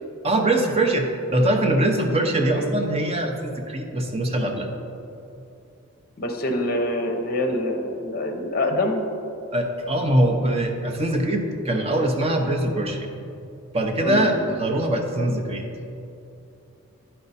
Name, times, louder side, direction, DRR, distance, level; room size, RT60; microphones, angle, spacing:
voice 1, 0.2-4.7 9.5-13.1 13.7-15.7, right 1 dB, 25° right, 3 dB, 0.6 m, -22 dB
voice 2, 2.4-2.7 6.2-9.0 14.0-14.3, left 1 dB, 40° left, 3 dB, 0.7 m, -25 dB
9.8 x 4.4 x 4.1 m, 2.7 s
head